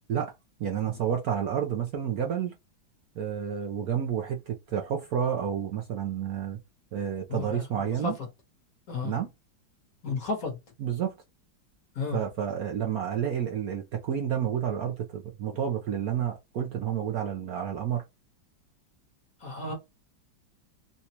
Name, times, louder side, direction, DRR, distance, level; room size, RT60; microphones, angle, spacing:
voice 1, 0.6-2.6 3.2-6.6 6.9-8.2 9.0-9.3 10.8-11.1 12.1-18.0, right 8 dB, 65° right, 1.0 m, -30 dB
voice 2, 7.3-7.7 8.0-8.1 8.9-9.1 10.0-10.6 11.9-12.2 19.4-19.7, left 4 dB, 50° left, 1.5 m, -32 dB
4.1 x 2.3 x 2.9 m
omnidirectional pair, 2.1 m